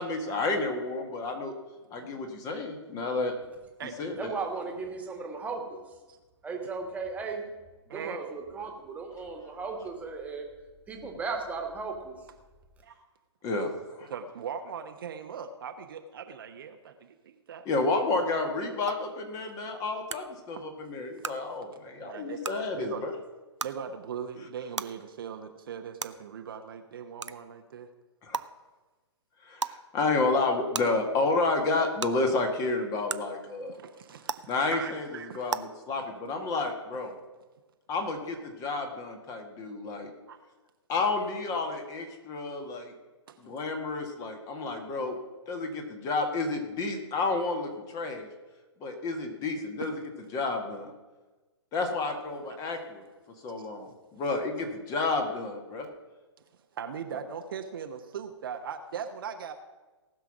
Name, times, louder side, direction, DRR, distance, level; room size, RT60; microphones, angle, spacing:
voice 1, 0.0-1.5 1.9-3.3 4.0-4.1 13.4-13.7 14.0-14.1 17.6-23.1 28.2-28.5 29.4-33.8 34.5-35.1 35.3-37.1 37.9-40.1 40.9-42.9 43.4-45.2 45.5-48.3 48.8-49.9 50.3-50.9 51.7-53.0 53.4-55.9, left 3 dB, 20° left, 5 dB, 1.7 m, -30 dB
voice 2, 2.0-2.3 3.8-3.9 6.1-6.2 7.9-8.4 12.8-12.9 14.0-17.6 20.6-20.7 21.2-21.3 22.0-22.5 22.7-23.0 23.6-27.9 33.7-35.6 40.3-40.4 43.3-43.4 52.1-52.2 53.6-53.7 56.5-59.5, right 7 dB, 50° right, 6 dB, 1.0 m, -40 dB
voice 3, 4.2-5.8 6.4-7.5 7.9-10.4 10.9-12.2, right 4 dB, 10° right, 2 dB, 1.9 m, -36 dB
sound 1, 18.9-19.0 20.1-20.2 21.2-21.3 22.4-22.5 23.6-23.7 24.8-24.9 26.0-26.1 27.2-27.3 28.3-28.4 29.6-29.7 30.7-30.8 32.0-32.1 33.1-33.2 34.3-34.4 35.5-35.6, right 5 dB, 80° right, 0.6 m, -31 dB
18.5 x 6.2 x 6.0 m, 1.2 s
figure-of-eight pair, 120°, 15 cm